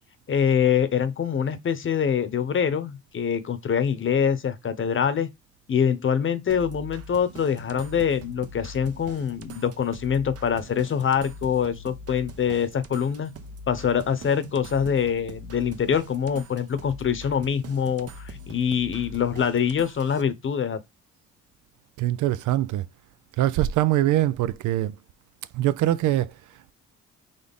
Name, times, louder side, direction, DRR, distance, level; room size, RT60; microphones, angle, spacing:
voice 1, 0.3-5.3 5.7-13.3 13.7-20.8, left 7 dB, 40° left, 0.9 m, -24 dB
sound 1, 6.5-20.2, right 1 dB, 50° right, 0.9 m, -43 dB
voice 2, 22.0-22.8 23.4-24.9 25.5-26.3, right 14 dB, 80° right, 0.5 m, -23 dB
4.2 x 3.4 x 3.5 m
cardioid pair, 90°, 30 cm